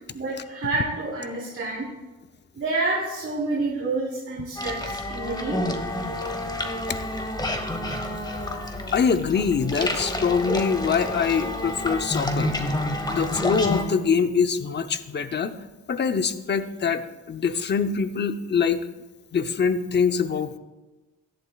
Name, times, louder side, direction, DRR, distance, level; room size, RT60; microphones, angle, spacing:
voice 1, 0.1-1.9 2.5-5.6, right 2 dB, 45° right, -6 dB, 3.7 m, -28 dB
sound 1, 4.6-13.8, left 1 dB, 15° left, 1.5 m, -29 dB
voice 2, 8.9-12.5 13.0-15.6 15.9-18.9 19.3-20.6, left 6 dB, 35° left, 10 dB, 0.7 m, -24 dB
16.0 x 11.5 x 2.4 m, 1.1 s
cardioid pair, 90°, 30 cm